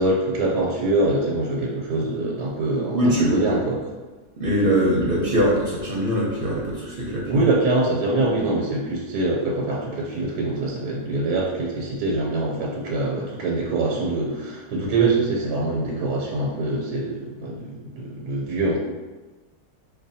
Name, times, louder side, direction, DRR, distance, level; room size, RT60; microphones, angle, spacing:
voice 1, 0.0-3.8 7.3-18.8, right 2 dB, 90° right, -4 dB, 1.2 m, -24 dB
voice 2, 2.9-3.4 4.4-7.4, equal, 50° right, -4 dB, 0.7 m, -22 dB
5.4 x 2.2 x 2.7 m, 1.2 s
omnidirectional pair, 1.7 m